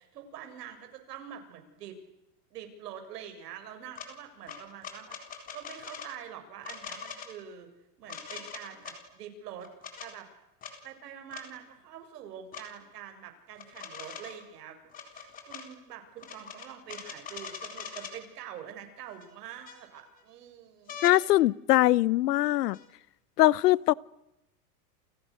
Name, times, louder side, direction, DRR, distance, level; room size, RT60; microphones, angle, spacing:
voice 1, 0.0-2.0 2.5-7.7 8.0-9.7 10.0-10.3 10.8-14.8 15.1-20.9, right 9 dB, 75° right, 7.6 m, -45 dB
sound 1, 4.0-4.1 4.5-6.1 6.6-7.3 8.1-9.0 9.6-10.1 10.6-10.7 11.3-11.5 12.5-12.7 13.6-14.4 14.9-15.7 16.2-18.2 19.2-19.3 19.7-20.2 20.9-21.2 22.7-22.9, left 6 dB, 15° left, 4.0 m, -42 dB
voice 2, 21.0-22.8 23.4-23.9, left 16 dB, 75° left, 1.0 m, -22 dB
30.0 x 30.0 x 6.6 m
supercardioid pair, 175°, 47 cm